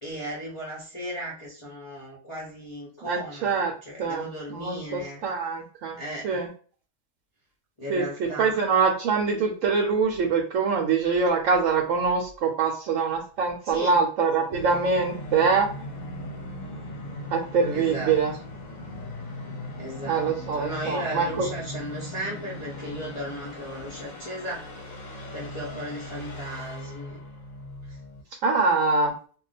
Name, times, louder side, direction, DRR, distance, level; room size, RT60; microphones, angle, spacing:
voice 1, 0.0-5.2 6.0-6.4 7.8-8.6 13.6-14.0 17.7-18.1 19.8-25.0 25.3-27.2 27.9-28.0, equal, 30° left, -5 dB, 0.7 m, -36 dB
voice 2, 3.0-4.2 4.5-6.5 7.9-15.7 17.3-18.3 20.1-21.5 28.4-29.1, right 5 dB, 75° right, 1 dB, 1.0 m, -24 dB
Musical instrument, 14.5-28.2, left 1 dB, 80° left, 1.2 m, -38 dB
2.4 x 2.2 x 3.9 m, 0.41 s
omnidirectional pair, 1.4 m